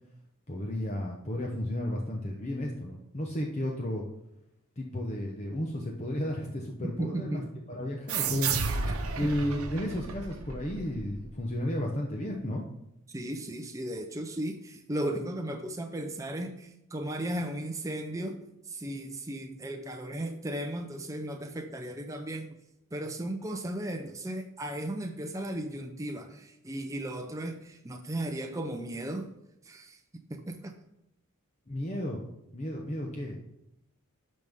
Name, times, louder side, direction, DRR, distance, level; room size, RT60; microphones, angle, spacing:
voice 1, 0.5-4.0 4.8-7.4 7.7-8.5 9.1-12.6 31.7-32.2 32.5-33.4, left 1 dB, 30° left, 0 dB, 0.9 m, -33 dB
voice 2, 7.0-7.5 9.2-9.3 13.1-18.4 18.7-22.5 22.9-29.3 29.6-30.0 30.3-30.7, right 1 dB, 15° right, 4 dB, 0.5 m, -35 dB
sound 1, 8.1-11.3, right 5 dB, 80° right, 0.9 m, -32 dB
12.0 x 5.4 x 3.6 m, 0.84 s
head